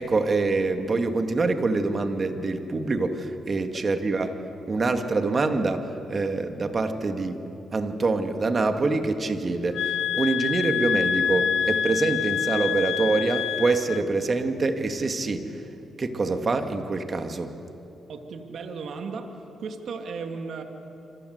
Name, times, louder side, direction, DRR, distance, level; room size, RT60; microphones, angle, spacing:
voice 1, 0.0-4.4 4.7-7.4 7.7-15.6 16.0-17.6, right 3 dB, 40° right, 6 dB, 2.4 m, -25 dB
sound 1, 9.7-14.0, left 8 dB, 75° left, 0.9 m, -26 dB
voice 2, 18.1-19.3 19.6-20.6, right 5 dB, 70° right, 5 dB, 2.4 m, -35 dB
27.5 x 25.5 x 8.2 m, 2.8 s
supercardioid pair, 60°, 0 cm